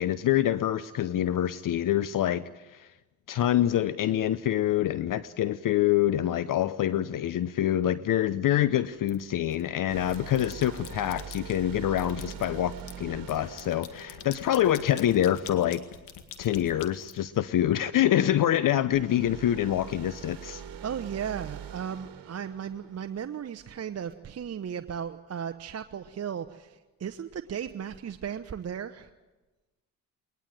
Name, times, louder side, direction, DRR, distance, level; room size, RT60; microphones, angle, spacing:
voice 1, 0.0-2.9 3.3-15.8 16.4-20.6, left 12 dB, 50° left, 16 dB, 0.8 m, -26 dB
sound 1, 9.1-9.6 10.0-11.6 12.0-17.7, left 9 dB, 75° left, 2.1 m, -46 dB
sound 2, 9.9-15.4 18.9-23.6, right 9 dB, 55° right, 2.0 m, -44 dB
voice 2, 20.8-29.1, right 8 dB, 40° right, 7 dB, 1.0 m, -36 dB
21.5 x 19.5 x 9.1 m, 1.2 s
supercardioid pair, 70°, 41 cm